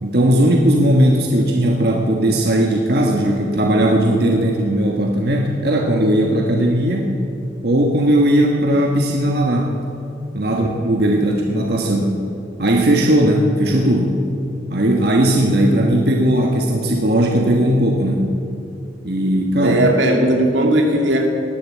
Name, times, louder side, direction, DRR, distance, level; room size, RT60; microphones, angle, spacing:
voice 1, 0.0-7.1 7.6-9.7 10.3-12.1 12.6-14.2 14.7-18.3 19.0-19.8, right 1 dB, 60° right, 0 dB, 1.4 m, -17 dB
voice 2, 19.6-21.3, right 1 dB, 85° right, 2 dB, 2.4 m, -17 dB
18.0 x 10.5 x 7.5 m, 2.6 s
head